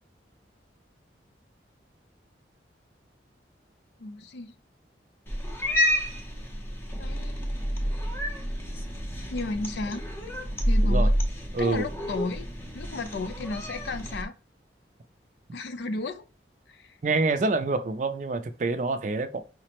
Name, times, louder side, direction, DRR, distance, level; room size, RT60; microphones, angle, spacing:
voice 1, 4.0-4.5 7.0-7.4 9.3-10.0 10.7-11.2 11.6-12.5 12.7-14.3 15.5-16.3 16.7-17.0, left 3 dB, 70° left, 0.4 m, -33 dB
Cat, 5.3-14.2, equal, 15° left, 0.5 m, -29 dB
voice 2, 11.5-11.9 17.0-19.4, right 3 dB, 40° right, 0.4 m, -26 dB
5.0 x 2.0 x 2.8 m
head